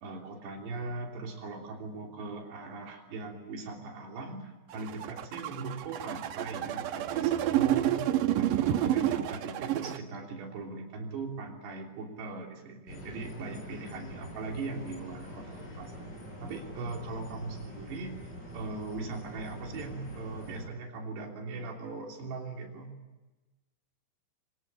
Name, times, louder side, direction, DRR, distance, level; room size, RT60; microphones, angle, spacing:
voice 1, 0.0-8.0 8.4-16.1 16.4-18.2 18.5-22.9, right 3 dB, 90° right, 1 dB, 5.4 m, -40 dB
sound 1, 4.7-10.0, right 12 dB, 70° right, 2.3 m, -29 dB
sound 2, 12.9-20.7, left 1 dB, 25° left, 7.0 m, -44 dB
24.5 x 19.0 x 10.0 m, 1.2 s
omnidirectional pair, 4.7 m